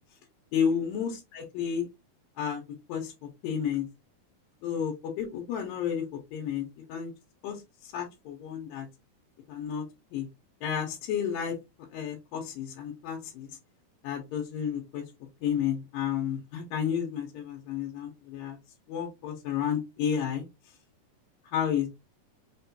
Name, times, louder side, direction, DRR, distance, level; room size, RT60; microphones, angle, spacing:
voice 1, 0.5-1.9 2.4-2.6 2.9-3.1 3.4-3.9 4.6-7.1 7.4-8.9 9.5-9.8 10.1-10.3 10.6-11.5 11.9-13.5 14.0-15.0 15.4-18.6 18.9-20.5 21.4-21.9, left 8 dB, 85° left, 1 dB, 2.6 m, -31 dB
5.9 x 2.2 x 2.7 m, 0.24 s
omnidirectional pair, 3.9 m